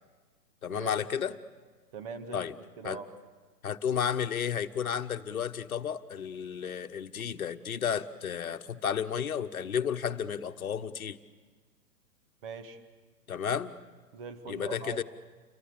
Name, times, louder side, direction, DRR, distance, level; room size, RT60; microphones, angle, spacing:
voice 1, 0.6-1.3 2.3-2.5 2.8-3.0 3.6-11.2 13.3-13.7 14.5-15.0, left 8 dB, 60° left, 9 dB, 1.3 m, -32 dB
voice 2, 1.9-2.4 2.8-3.1 12.4-12.8 14.1-15.0, right 5 dB, 30° right, 8 dB, 2.1 m, -41 dB
29.0 x 23.0 x 7.1 m, 1.4 s
figure-of-eight pair, 125°, 49 cm